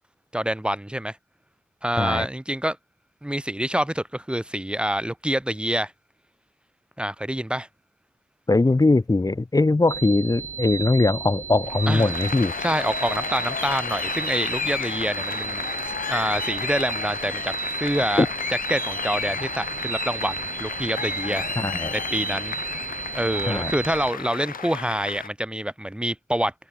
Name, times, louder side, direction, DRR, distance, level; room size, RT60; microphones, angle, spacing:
voice 1, 0.3-1.2 1.8-2.8 3.2-5.9 7.0-7.7 11.9-12.2 12.6-17.5 17.8-18.3 18.7-21.5 21.9-22.6 23.1-26.5, right 1 dB, 5° right, 2.0 m, -26 dB
voice 2, 8.5-12.5 18.2-18.3 21.6-21.9 23.5-23.7, left 2 dB, 25° left, 5.8 m, -21 dB
sound 1, 9.9-24.1, right 6 dB, 55° right, 4.4 m, -33 dB
Applause, 11.7-25.3, left 7 dB, 65° left, 7.7 m, -32 dB
cardioid pair, 80°, 15 cm